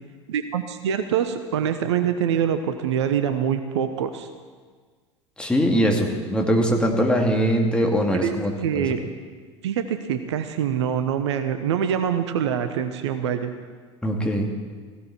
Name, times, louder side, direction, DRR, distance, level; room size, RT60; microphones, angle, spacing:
voice 1, 0.3-4.3 8.2-8.3 8.6-9.0 9.6-13.5, right 8 dB, 65° right, 9 dB, 1.0 m, -24 dB
voice 2, 5.4-8.9 14.0-14.5, equal, 5° left, 0 dB, 2.4 m, -22 dB
17.0 x 16.5 x 4.4 m, 1.5 s
figure-of-eight pair, 75°, 16 cm